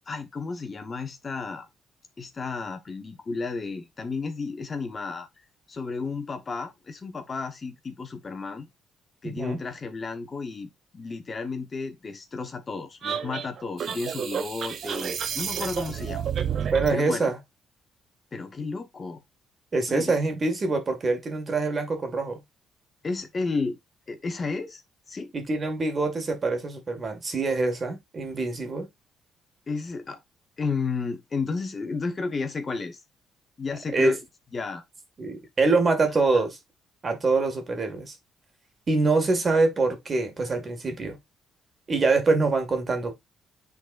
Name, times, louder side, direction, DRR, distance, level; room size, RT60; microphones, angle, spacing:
voice 1, 0.0-1.7 2.2-5.3 5.7-8.7 9.2-16.2 16.9-17.3 18.3-19.2 19.9-20.1 23.0-23.8 24.1-24.8 25.1-25.3 29.7-30.2 30.6-33.0 33.6-34.2 34.5-34.8 36.3-36.4, left 4 dB, 35° left, 1.1 m, -32 dB
voice 2, 9.2-9.6 16.7-17.4 19.7-22.4 25.3-28.9 33.9-34.2 35.2-36.6 37.0-38.2 38.9-41.2 41.9-43.1, right 3 dB, 35° right, 1.9 m, -25 dB
sound 1, 13.0-17.0, right 8 dB, 60° right, 0.6 m, -30 dB
9.2 x 4.0 x 2.5 m
cardioid pair, 95°, 0 cm